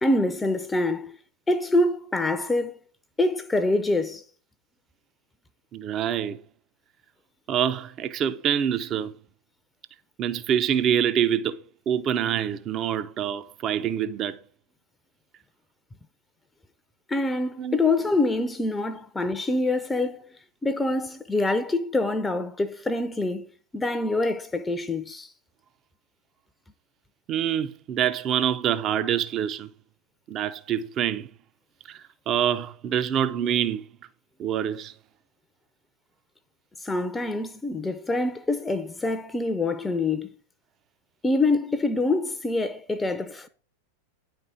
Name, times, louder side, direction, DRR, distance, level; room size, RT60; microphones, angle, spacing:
voice 1, 0.0-1.2 1.5-2.8 3.2-4.2 17.1-20.3 20.6-23.5 23.7-25.3 36.8-40.3 41.2-43.5, left 2 dB, 10° left, 0.6 m, -25 dB
voice 2, 5.7-6.4 7.5-9.1 10.2-11.6 11.9-14.4 17.6-17.8 27.3-29.7 30.3-31.3 31.9-33.9 34.4-34.9, right 9 dB, 30° right, 0.6 m, -26 dB
9.9 x 4.5 x 6.2 m
figure-of-eight pair, 90°, 0 cm